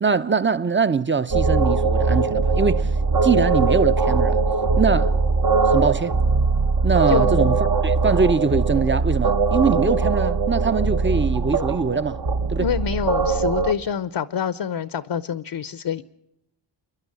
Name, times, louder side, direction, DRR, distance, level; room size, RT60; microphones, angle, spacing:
voice 1, 0.0-2.9 3.2-4.4 4.8-5.2 5.6-6.2 6.8-7.6 7.8-12.2 12.5-12.7, right 5 dB, 20° right, 0.9 m, -22 dB
sound 1, 1.3-13.7, right 4 dB, 45° right, 1.4 m, -21 dB
voice 2, 7.1-7.6 12.6-16.0, left 8 dB, 55° left, 0.9 m, -26 dB
28.5 x 11.0 x 9.7 m
cardioid pair, 55°, 50 cm